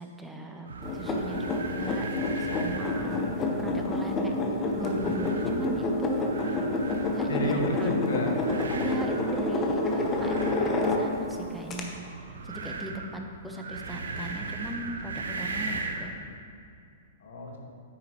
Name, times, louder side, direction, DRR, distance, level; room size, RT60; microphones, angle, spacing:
voice 1, 0.0-2.1 2.4-4.4 4.7-6.6 7.1-7.9 8.7-12.0 12.4-16.1, right 1 dB, 5° right, 2 dB, 1.0 m, -37 dB
sound 1, 0.7-16.2, right 3 dB, 75° right, 0.9 m, -39 dB
sound 2, 0.8-11.3 11.7-11.8, left 2 dB, 25° left, 1.1 m, -28 dB
voice 2, 2.9-3.6 7.3-8.3 9.9-10.1 17.2-17.6, left 1 dB, 65° left, 0 dB, 1.5 m, -32 dB
9.6 x 8.8 x 3.1 m, 2.5 s
hypercardioid pair, 115°, 0 cm